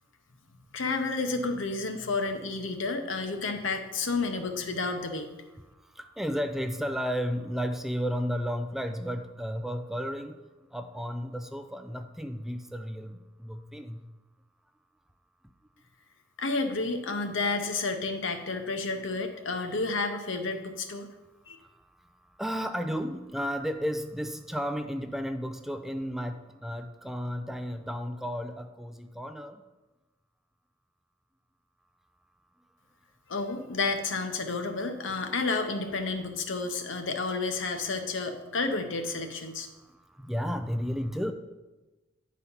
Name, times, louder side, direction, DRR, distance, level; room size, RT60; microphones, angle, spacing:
voice 1, 0.7-5.3 16.4-21.1 21.5-21.6 33.3-39.7, left 3 dB, 80° left, 6 dB, 0.9 m, -31 dB
voice 2, 6.0-10.4 10.7-14.1 22.4-29.6 40.2-41.3, equal, ahead, 7 dB, 0.3 m, -33 dB
9.5 x 4.2 x 5.5 m, 1.1 s
head